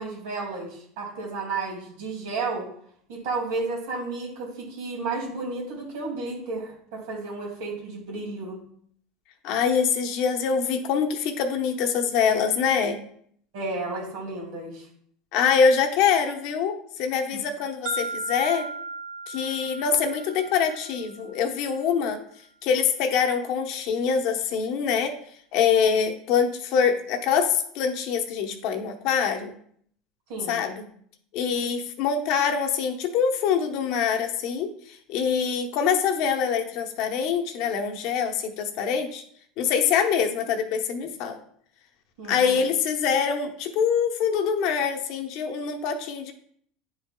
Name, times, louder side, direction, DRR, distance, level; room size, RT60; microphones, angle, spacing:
voice 1, 0.0-2.7 3.1-8.6 13.5-14.9 17.3-17.4 30.3-30.6 42.2-42.6, right 3 dB, 80° right, -1 dB, 2.4 m, -32 dB
voice 2, 9.4-13.0 15.3-18.7 19.3-22.2 22.6-25.2 25.5-29.5 30.5-30.9 31.3-34.7 35.1-39.2 39.6-41.4 42.3-46.3, left 6 dB, 60° left, 5 dB, 0.9 m, -24 dB
sound 1, 17.9-21.8, right 2 dB, 65° right, 1.5 m, -36 dB
10.0 x 4.8 x 2.2 m, 0.63 s
supercardioid pair, 125°, 0 cm